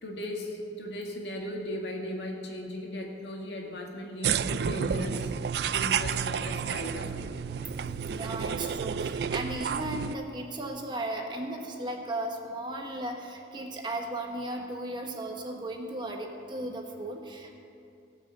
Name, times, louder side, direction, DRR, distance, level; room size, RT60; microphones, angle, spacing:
voice 1, 0.0-5.3 5.7-7.4, left 1 dB, 70° left, 0 dB, 2.1 m, -37 dB
sound 1, 4.2-10.1, right 7 dB, 60° right, 0.3 m, -31 dB
voice 2, 7.9-17.5, right 1 dB, 25° right, 2 dB, 1.2 m, -36 dB
18.0 x 6.3 x 7.8 m, 2.5 s
head